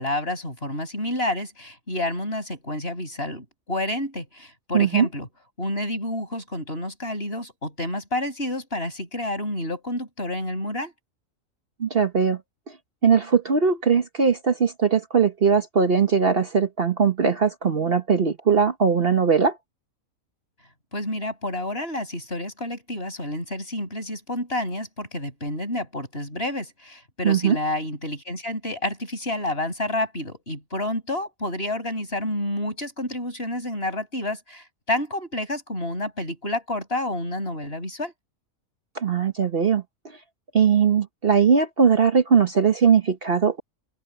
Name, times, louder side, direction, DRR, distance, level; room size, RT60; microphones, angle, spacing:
voice 1, 0.0-5.3 5.6-10.9 20.9-38.1, left 1 dB, 45° left, 8.2 m, -29 dB
voice 2, 4.7-5.1 11.8-12.4 13.0-19.6 27.2-27.6 38.9-39.8 40.5-43.6, right 6 dB, 45° right, 1.3 m, -20 dB
open air
omnidirectional pair, 1.4 m